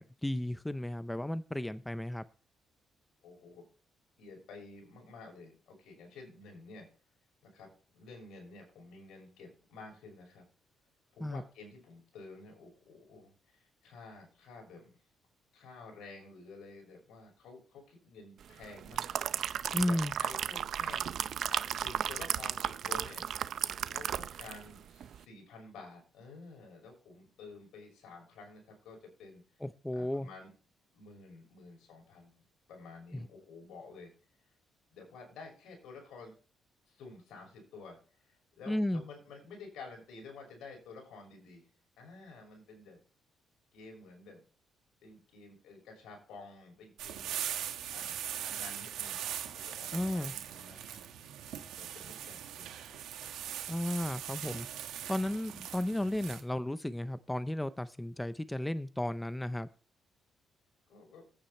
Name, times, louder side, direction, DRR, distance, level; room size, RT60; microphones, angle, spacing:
voice 1, 0.0-2.2 11.2-11.4 19.7-20.1 29.6-30.3 33.1-33.3 38.7-39.0 49.9-50.3 53.7-54.7 55.1-59.7, left 1 dB, 10° left, 13 dB, 0.6 m, -34 dB
voice 2, 3.2-3.6 4.2-6.9 7.4-7.7 7.9-10.5 11.1-14.9 15.5-19.2 19.7-21.1 21.5-23.2 23.8-29.4 29.9-30.5 30.9-32.4 32.7-34.1 34.9-36.3 36.9-38.0 38.2-41.7 42.0-43.0 43.7-44.4 45.0-47.4 47.9-49.2 49.6-51.2 51.8-52.7 60.9-61.2, left 3 dB, 80° left, 1 dB, 6.1 m, -51 dB
sound 1, 18.6-24.7 25.0-25.2, right 9 dB, 65° right, 0.6 m, -35 dB
sound 2, 47.0-56.4, right 10 dB, 85° right, 1.9 m, -41 dB
10.0 x 9.0 x 4.3 m, 0.37 s
cardioid pair, 90°, 0 cm